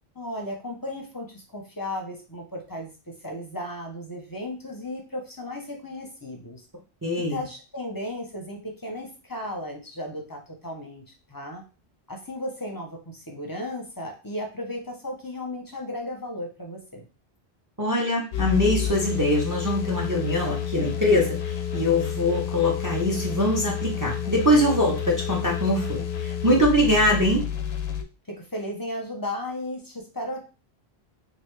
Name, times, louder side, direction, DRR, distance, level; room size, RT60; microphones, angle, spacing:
voice 1, 0.1-2.9 3.2-6.6 7.1-11.0 11.3-11.6 12.1-17.1 28.3-30.4, left 1 dB, 25° left, 1 dB, 0.6 m, -35 dB
voice 2, 7.0-7.4 17.8-27.5, left 1 dB, 20° right, -1 dB, 0.6 m, -23 dB
sound 1, 18.3-28.0, left 9 dB, 75° left, 0.8 m, -30 dB
3.3 x 2.4 x 3.2 m, 0.32 s
omnidirectional pair, 1.1 m